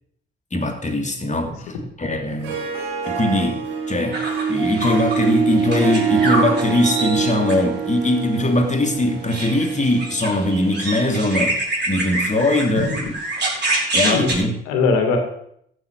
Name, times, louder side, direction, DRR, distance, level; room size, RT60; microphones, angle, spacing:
voice 1, 0.5-2.6 3.1-11.6 11.9-12.9 13.9-14.5, left 1 dB, 25° left, 4 dB, 2.8 m, -21 dB
Harp, 2.3-10.9, right 6 dB, 75° right, 2.6 m, -25 dB
sound 1, 4.1-5.3 5.6-7.6 9.2-14.3, right 2 dB, 35° right, 5.0 m, -25 dB
voice 2, 13.6-14.3 14.6-15.2, left 4 dB, 75° left, 4 dB, 2.4 m, -22 dB
14.0 x 7.2 x 6.5 m, 0.70 s
hypercardioid pair, 45°, 30 cm